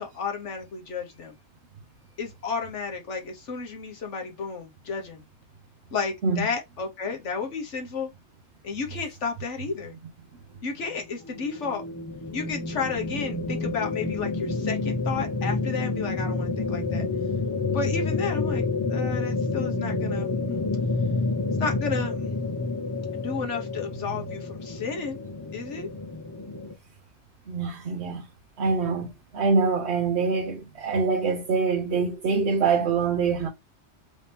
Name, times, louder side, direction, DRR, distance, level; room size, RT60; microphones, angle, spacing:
voice 1, 0.0-1.4 2.2-5.2 5.9-8.1 8.6-9.9 10.6-11.8 12.3-17.1 17.7-20.6 21.6-22.2 23.1-25.2 25.5-25.9, left 5 dB, 90° left, 1.6 m, -32 dB
sound 1, 10.9-26.7, left 3 dB, 20° left, 0.7 m, -29 dB
voice 2, 27.5-28.3 28.6-33.5, right 4 dB, 70° right, 1.1 m, -25 dB
4.8 x 2.8 x 3.4 m
omnidirectional pair, 1.2 m